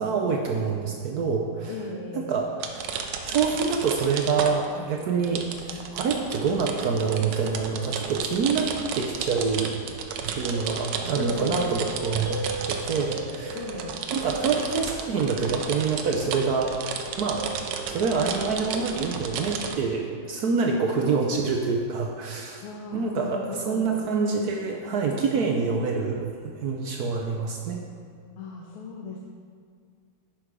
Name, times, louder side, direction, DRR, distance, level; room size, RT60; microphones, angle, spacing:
voice 1, 0.0-1.7 2.1-2.9 3.3-9.7 10.3-12.4 12.7-13.6 14.1-16.8 17.2-17.5 17.9-22.6 22.9-27.8, right 5 dB, 75° right, 1 dB, 0.9 m, -26 dB
voice 2, 1.7-2.3 11.2-11.7 13.5-14.0 22.6-24.0 28.4-29.2, left 4 dB, 75° left, 0 dB, 1.6 m, -37 dB
sound 1, 2.6-4.8 5.2-19.8, right 6 dB, 90° right, 1.7 m, -33 dB
sound 2, 10.5-14.8 15.3-18.9, right 3 dB, 55° right, 1.4 m, -39 dB
10.0 x 5.9 x 4.8 m, 2.1 s
omnidirectional pair, 2.4 m